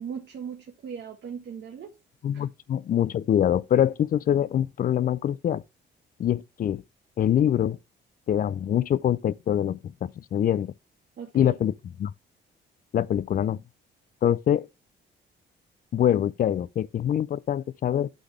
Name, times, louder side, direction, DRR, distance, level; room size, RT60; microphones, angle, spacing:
voice 1, 0.0-1.9 2.3-2.4 11.2-11.6, right 7 dB, 60° right, 1.3 m, -38 dB
voice 2, 2.2-5.6 6.2-6.8 7.2-7.8 8.3-10.7 11.3-11.7 12.0-12.1 12.9-13.6 14.2-14.7 15.9-18.1, left 10 dB, 45° left, 0.4 m, -24 dB
12.0 x 4.0 x 3.1 m
cardioid pair, 90°, 20 cm